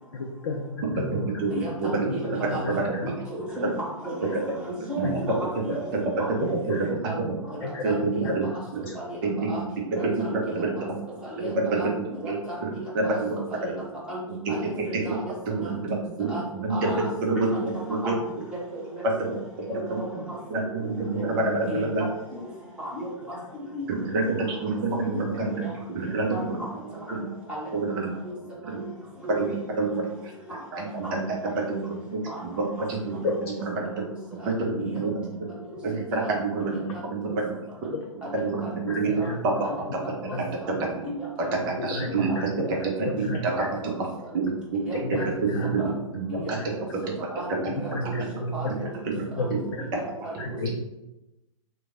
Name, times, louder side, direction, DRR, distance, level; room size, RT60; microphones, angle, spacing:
voice 1, 0.1-0.7 0.9-1.2 2.1-3.1 5.0-5.5 6.4-6.8 7.6-8.6 8.9-9.0 36.8-36.9 37.9-38.1 38.9-39.4 40.3-40.4 41.6-42.5 43.1-43.7 45.0-45.8 46.5-46.7 47.7-48.7 49.3-49.8 50.4-50.7, left 2 dB, 50° left, 1 dB, 0.5 m, -33 dB
voice 2, 0.8-2.2 2.6-2.8 4.9-5.2 5.9-6.0 6.4-6.9 7.2-7.3 7.8-8.9 9.2-9.5 9.9-10.9 11.4-12.4 12.6-13.8 14.3-15.2 15.5-18.1 19.2-20.0 20.5-22.0 23.9-26.6 27.1-27.3 27.7-28.2 28.7-28.8 29.3-30.1 30.7-34.1 34.4-35.6 35.8-37.6 38.1-39.1 39.4-40.0 40.5-40.9 41.4-42.5 43.0-43.9 44.3-44.8 45.1-45.2 45.6-46.7 49.2-49.3, right 3 dB, 35° right, -1 dB, 0.8 m, -28 dB
voice 3, 1.5-2.2 2.5-2.6 3.0-4.3 4.6-5.9 6.2-6.3 6.7-6.8 7.0-8.3 8.9-9.2 9.5-9.6 9.9-10.5 11.2-11.5 11.8-13.2 13.6-14.2 14.5-15.3 15.6-15.7 16.3-16.4 16.7-17.1 17.5-17.7 18.0-18.2 18.5-19.1 19.6-20.4 21.2-21.4 21.6-22.4 22.8-23.9 25.1-25.7 26.3-26.7 27.1-27.2 27.5-28.0 28.2-28.3 29.2-29.4 31.0-31.1 32.3-32.4 33.8-33.9 34.4-34.5 34.8-35.0 36.2-36.3 36.6-37.4 38.2-38.7 39.2-39.3 39.6-39.8 40.3-40.8 41.0-41.9 42.3-42.4 42.7-42.8 43.5-43.6 44.3-44.4 44.7-45.2 45.8-46.0 46.3-46.5 47.3-47.5 47.8-48.2 48.5-48.9 49.3-49.5 49.9-50.6, right 1 dB, 5° right, -8 dB, 1.2 m, -36 dB
3.1 x 2.3 x 3.8 m, 0.95 s
figure-of-eight pair, 115°, 18 cm